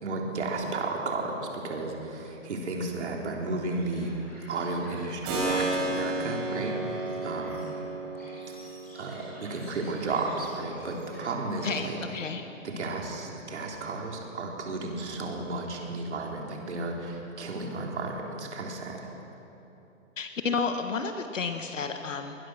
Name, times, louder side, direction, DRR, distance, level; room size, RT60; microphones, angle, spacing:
voice 1, 0.0-4.1 4.5-7.6 8.9-12.0 12.6-19.0, right 3 dB, 55° right, 0 dB, 3.6 m, -33 dB
sound 1, 3.7-11.9, equal, 5° left, 6.9 m, -52 dB
Keyboard (musical), 5.2-13.9, right 2 dB, 20° right, 4.7 m, -35 dB
voice 2, 11.6-12.4 20.2-22.4, left 5 dB, 70° left, 6 dB, 1.7 m, -31 dB
22.0 x 20.0 x 6.2 m, 3.0 s
hypercardioid pair, 170°, 40 cm